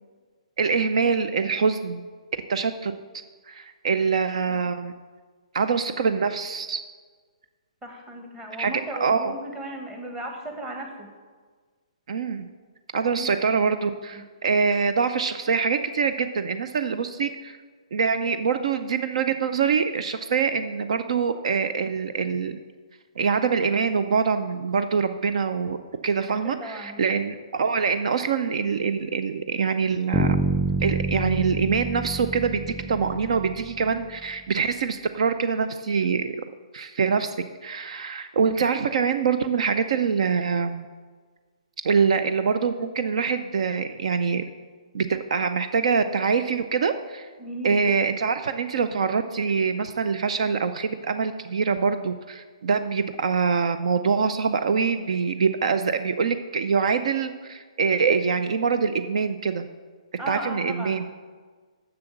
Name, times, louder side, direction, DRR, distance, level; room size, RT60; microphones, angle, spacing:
voice 1, 0.6-2.0 2.5-2.9 3.5-4.9 5.5-6.8 8.6-8.7 9.0-9.3 12.1-12.5 12.9-17.6 17.9-22.6 23.2-25.8 26.0-30.4 30.8-36.3 36.7-37.4 37.6-40.9 41.8-44.4 44.9-47.3 47.6-59.7 60.3-61.1, right 5 dB, 65° right, 9 dB, 0.5 m, -24 dB
voice 2, 7.8-11.1 13.0-13.3 14.1-14.2 26.4-27.0 47.4-47.8 60.2-61.0, right 1 dB, 15° right, 2 dB, 1.5 m, -36 dB
Bass guitar, 30.1-34.1, right 2 dB, 10° left, 0.5 m, -27 dB
6.9 x 6.9 x 8.0 m, 1.5 s
hypercardioid pair, 140°, 4 cm